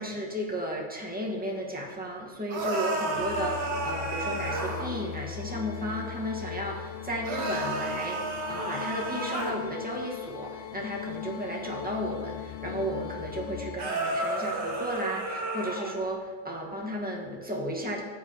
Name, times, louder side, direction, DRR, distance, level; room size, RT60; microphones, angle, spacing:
voice 1, 0.0-18.0, equal, 5° right, -2 dB, 1.0 m, -34 dB
sound 1, 2.5-4.9 7.2-9.5 13.8-15.9, right 2 dB, 65° right, 1.8 m, -31 dB
sound 2, 3.1-13.8, left 9 dB, 85° left, 1.3 m, -39 dB
14.5 x 7.5 x 2.9 m, 1.5 s
omnidirectional pair, 2.0 m